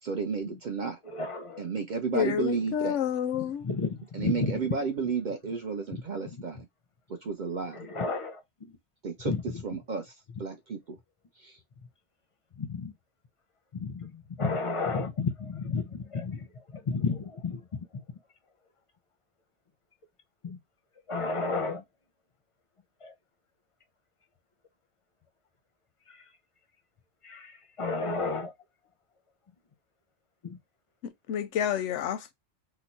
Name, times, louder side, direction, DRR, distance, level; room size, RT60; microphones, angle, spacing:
voice 1, 0.0-1.0 1.6-3.0 4.1-6.7 7.2-7.9 9.0-9.3 9.6-11.0 11.4-11.6, right 5 dB, 60° right, 0.5 m, -32 dB
voice 2, 1.1-1.7 3.4-4.6 5.9-6.0 7.7-8.4 9.3-9.4 12.6-12.9 13.7-16.5 16.7-17.6 20.4-20.6 21.1-21.8 23.0-23.1 26.1-26.2 27.2-27.5 27.8-28.5 30.4-30.6, left 4 dB, 40° left, 0.5 m, -32 dB
voice 3, 2.1-3.7 31.0-32.3, left 9 dB, 85° left, 0.9 m, -29 dB
2.9 x 2.0 x 4.0 m
omnidirectional pair, 1.2 m